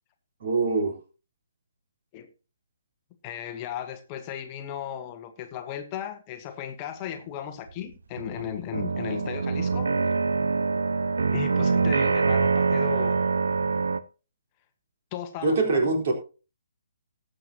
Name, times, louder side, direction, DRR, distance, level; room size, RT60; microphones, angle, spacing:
voice 1, 0.4-1.0 15.4-16.1, right 3 dB, 45° right, 3.8 m, -23 dB
voice 2, 3.2-9.9 11.3-13.2 15.1-15.8, left 9 dB, 25° left, 1.2 m, -36 dB
sound 1, 7.7-7.8 8.2-14.0, right 4 dB, 60° right, 0.7 m, -24 dB
19.5 x 7.7 x 2.9 m
figure-of-eight pair, 130°, 0 cm